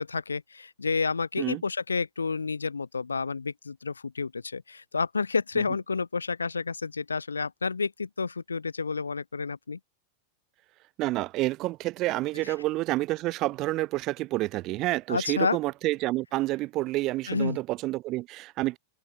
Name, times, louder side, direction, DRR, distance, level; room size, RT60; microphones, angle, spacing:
voice 1, 0.0-9.8 12.4-12.5 15.1-15.6 17.3-17.6, left 4 dB, 75° left, 0.6 m, -30 dB
voice 2, 11.0-18.8, right 18 dB, 40° right, 0.6 m, -29 dB
open air
figure-of-eight pair, 90°, 0 cm